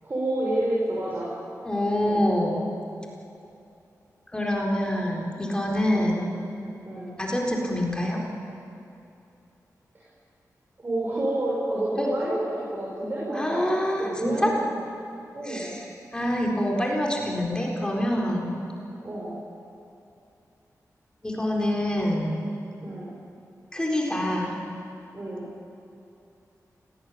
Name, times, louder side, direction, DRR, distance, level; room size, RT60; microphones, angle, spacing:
voice 1, 0.0-1.3 2.0-2.3 5.9-6.2 6.9-7.1 9.9-10.0 10.8-14.8 15.3-15.8 19.0-19.4 22.8-23.1 25.1-25.5, right 1 dB, 35° right, -5 dB, 5.7 m, -29 dB
voice 2, 1.6-2.6 4.3-6.3 7.2-8.2 12.0-12.1 13.3-14.5 15.5-15.8 16.1-18.6 21.2-22.4 23.7-24.6, left 1 dB, 15° left, -2 dB, 4.2 m, -26 dB
26.5 x 18.5 x 9.5 m, 2.7 s
wide cardioid pair, 135°, 6 cm